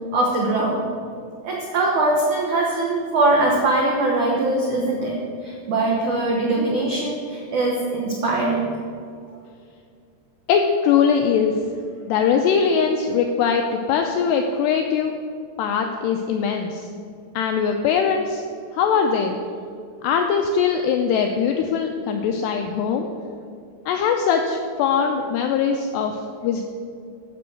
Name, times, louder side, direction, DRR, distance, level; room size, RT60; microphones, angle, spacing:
voice 1, 0.1-0.8 1.4-5.1 5.4-8.7, right 2 dB, 85° right, -2 dB, 1.7 m, -21 dB
voice 2, 10.5-11.6 12.1-15.2 15.6-16.9 17.3-18.4 18.7-19.4 20.0-23.1 23.9-26.6, left 6 dB, 85° left, 4 dB, 2.4 m, -21 dB
13.5 x 6.1 x 6.3 m, 2.3 s
omnidirectional pair, 5.5 m